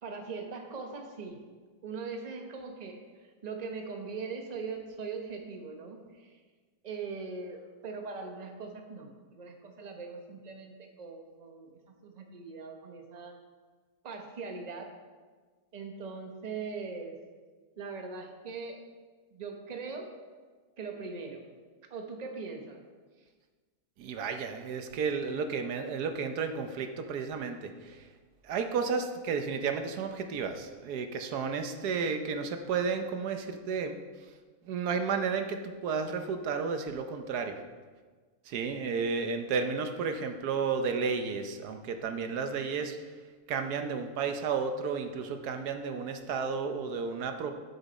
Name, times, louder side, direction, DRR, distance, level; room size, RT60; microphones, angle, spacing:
voice 1, 0.0-1.4 1.8-6.4 6.8-11.7 12.0-13.4 14.0-14.9 15.7-17.2 17.8-18.8 19.3-20.1 20.8-21.4 21.9-22.8, right 4 dB, 30° right, 3 dB, 0.9 m, -41 dB
voice 2, 24.0-28.1 28.4-34.0 34.7-37.6 38.4-43.0 43.5-47.5, right 5 dB, 85° right, 6 dB, 1.3 m, -32 dB
12.0 x 6.8 x 4.1 m, 1.4 s
omnidirectional pair, 1.6 m